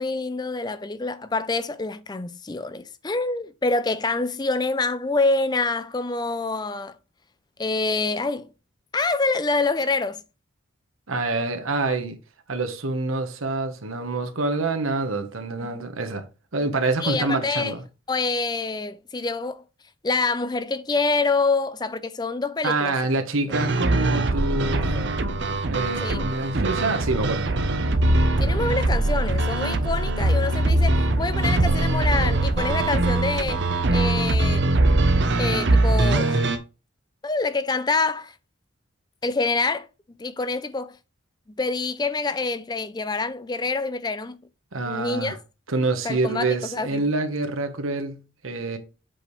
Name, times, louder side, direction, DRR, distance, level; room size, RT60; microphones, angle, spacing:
voice 1, 0.0-7.0 7.6-8.5 8.9-10.2 15.6-15.7 17.0-17.7 18.1-19.6 20.0-23.0 24.8-25.4 26.0-26.3 28.4-33.6 33.9-34.8 35.4-36.5 37.2-38.3 39.2-39.9 40.2-41.0 41.6-44.4 44.9-45.4 46.0-47.0, left 3 dB, 20° left, 0.4 m, -26 dB
voice 2, 11.1-12.2 12.5-16.3 16.5-17.8 22.6-25.0 25.7-27.4 44.7-45.4 45.7-48.8, right 3 dB, 85° right, 1.1 m, -26 dB
sound 1, 23.5-36.6, right 2 dB, 55° right, 0.7 m, -22 dB
7.7 x 5.0 x 3.1 m
head